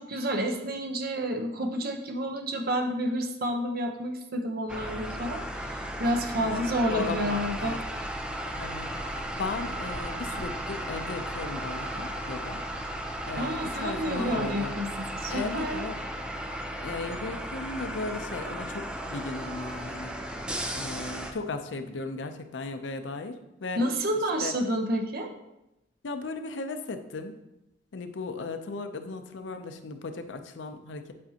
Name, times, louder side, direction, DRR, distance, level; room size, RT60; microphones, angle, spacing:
voice 1, 0.0-7.7 13.4-15.8 23.8-25.3, equal, 55° right, 3 dB, 0.8 m, -30 dB
sound 1, 4.7-21.3, equal, 5° right, 0.5 m, -35 dB
voice 2, 6.4-8.0 8.6-12.6 13.2-14.8 15.3-16.0 16.8-20.2 20.7-23.8 24.4-24.5 26.0-27.3 27.9-31.1, left 3 dB, 85° left, 7 dB, 0.6 m, -36 dB
8.6 x 5.2 x 2.8 m, 0.92 s
head